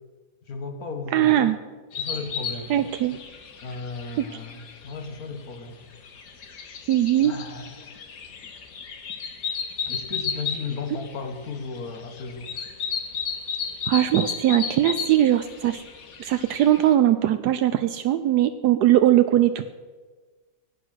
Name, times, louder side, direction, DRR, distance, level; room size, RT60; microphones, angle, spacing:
voice 1, 0.5-1.4 2.0-2.7 3.6-5.8 7.2-8.0 9.9-12.6, left 4 dB, 65° left, 6 dB, 2.0 m, -35 dB
voice 2, 1.1-1.6 2.7-3.2 6.9-7.3 13.9-15.8 16.2-19.6, right 12 dB, 80° right, 10 dB, 1.2 m, -20 dB
sound 1, 1.9-16.9, left 6 dB, 85° left, 1.9 m, -34 dB
16.5 x 9.6 x 6.3 m, 1.4 s
omnidirectional pair, 1.8 m